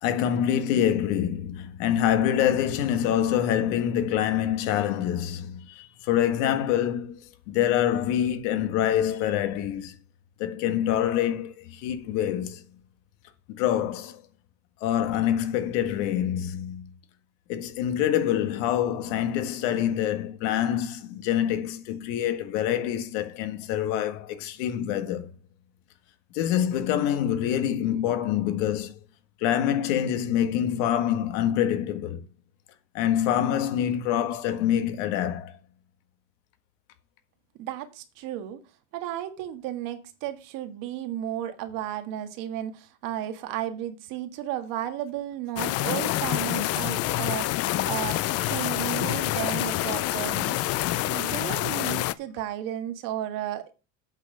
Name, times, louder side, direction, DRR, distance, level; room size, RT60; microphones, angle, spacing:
voice 1, 0.0-7.2 7.5-10.0 10.4-12.6 13.5-14.2 14.8-16.9 17.5-25.3 26.3-28.9 29.4-32.2 32.9-35.5, left 10 dB, 80° left, 1.7 m, -26 dB
voice 2, 37.6-38.6 38.9-48.2 48.5-50.6 51.0-53.7, right 12 dB, 60° right, 1.6 m, -33 dB
sound 1, 45.6-52.1, left 15 dB, 45° left, 0.5 m, -27 dB
8.3 x 5.5 x 6.4 m
cardioid pair, 135°, 36 cm